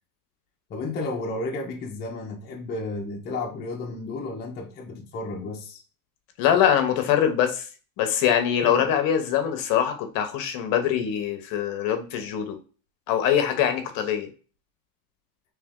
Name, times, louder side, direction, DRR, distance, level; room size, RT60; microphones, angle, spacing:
voice 1, 0.7-5.8 8.6-8.9, left 2 dB, 20° left, 0.6 m, -32 dB
voice 2, 6.4-7.6 8.0-12.6 13.1-14.3, left 9 dB, 50° left, 0.8 m, -23 dB
3.3 x 3.0 x 3.5 m
supercardioid pair, 150°, 46 cm